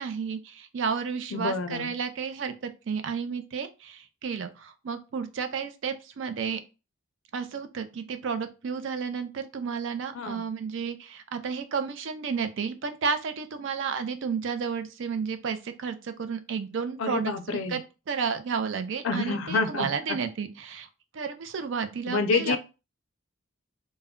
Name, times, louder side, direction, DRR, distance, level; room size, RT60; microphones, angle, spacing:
voice 1, 0.0-6.6 7.3-17.8 18.1-20.9 21.1-22.6, right 6 dB, 60° right, 9 dB, 0.4 m, -32 dB
voice 2, 1.3-1.9 10.1-10.4 17.0-17.8 19.0-20.2 22.1-22.6, left 4 dB, 70° left, 8 dB, 0.4 m, -28 dB
2.2 x 2.1 x 3.5 m, 0.30 s
head